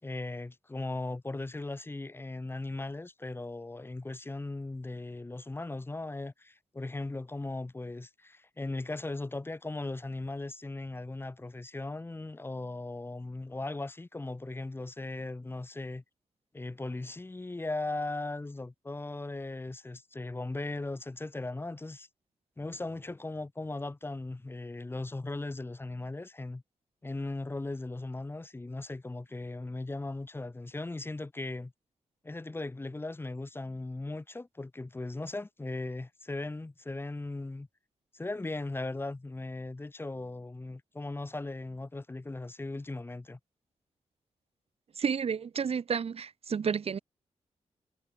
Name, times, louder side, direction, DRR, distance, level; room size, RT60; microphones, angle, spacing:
voice 1, 0.0-16.0 16.5-22.1 22.6-26.6 27.0-31.7 32.2-37.7 38.1-43.4, left 2 dB, 20° left, 4.8 m, -38 dB
voice 2, 45.0-47.0, right 6 dB, 60° right, 2.3 m, -31 dB
wide cardioid pair, 125°, 12 cm